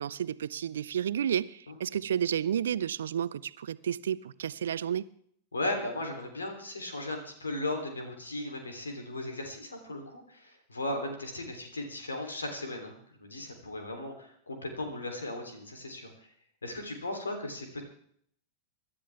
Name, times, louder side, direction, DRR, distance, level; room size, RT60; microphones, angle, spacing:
voice 1, 0.0-5.1, right 9 dB, 65° right, 0.5 m, -31 dB
voice 2, 5.5-16.3 16.6-17.8, left 2 dB, 75° left, 3.5 m, -37 dB
25.5 x 12.5 x 3.6 m
figure-of-eight pair, 90°, 0 cm